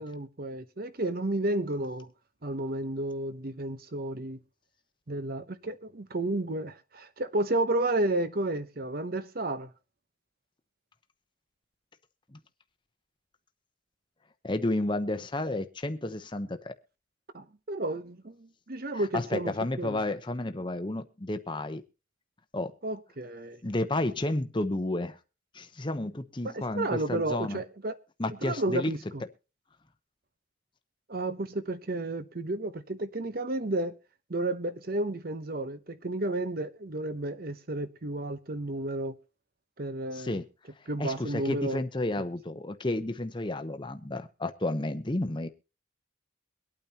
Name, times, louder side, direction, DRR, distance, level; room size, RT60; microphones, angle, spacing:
voice 1, 0.0-2.1 2.4-4.4 5.1-9.7 17.3-20.0 22.8-23.6 26.4-28.0 28.4-29.2 31.1-34.0 34.3-39.2 39.8-40.4 40.9-41.8, right 2 dB, 50° right, 0.9 m, -32 dB
voice 2, 14.4-16.7 18.9-21.8 22.5-22.7 23.6-25.2 25.5-27.6 28.2-28.9 40.1-40.5 41.0-45.5, left 2 dB, 25° left, 0.8 m, -31 dB
23.5 x 8.9 x 2.9 m
head